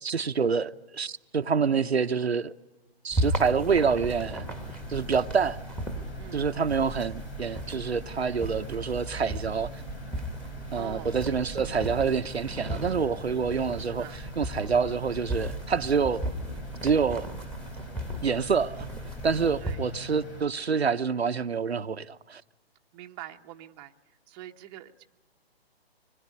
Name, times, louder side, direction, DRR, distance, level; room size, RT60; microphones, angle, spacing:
voice 1, 0.0-2.5 3.0-4.4 4.9-5.6 6.3-9.7 10.7-14.1 14.4-16.3 16.8-17.3 18.2-18.9 19.2-22.4, right 6 dB, 90° right, 0.9 m, -27 dB
sound 1, 3.1-19.7, right 1 dB, 5° left, 1.6 m, -36 dB
sound 2, 3.7-20.4, equal, 90° left, 3.9 m, -44 dB
voice 2, 6.2-6.5 10.7-11.1 13.8-14.2 19.6-19.8 22.9-25.0, right 13 dB, 25° right, 1.0 m, -44 dB
25.5 x 21.0 x 9.7 m
figure-of-eight pair, 140°, 31 cm